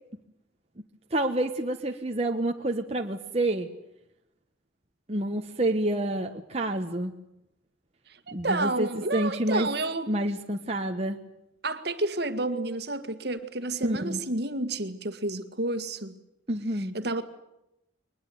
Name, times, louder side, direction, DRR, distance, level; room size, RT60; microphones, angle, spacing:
voice 1, 1.1-3.7 5.1-7.1 8.3-9.7 10.1-11.2 13.8-14.2 16.5-16.9, right 1 dB, 30° right, 3 dB, 1.3 m, -28 dB
voice 2, 8.1-10.1 11.6-16.2 16.9-17.2, right 2 dB, 55° right, 10 dB, 1.9 m, -30 dB
23.0 x 20.5 x 9.4 m, 0.85 s
head